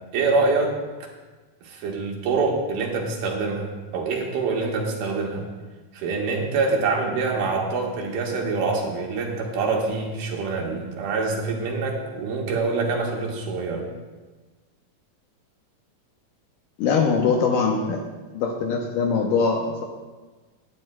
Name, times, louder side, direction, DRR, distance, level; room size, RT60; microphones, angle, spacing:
voice 1, 0.1-0.7 1.6-5.5 5.9-13.8, right 4 dB, 80° right, -1 dB, 3.2 m, -25 dB
voice 2, 16.8-18.1 18.3-19.8, left 5 dB, 75° left, 1 dB, 2.3 m, -22 dB
17.5 x 10.5 x 2.3 m, 1.3 s
omnidirectional pair, 4.4 m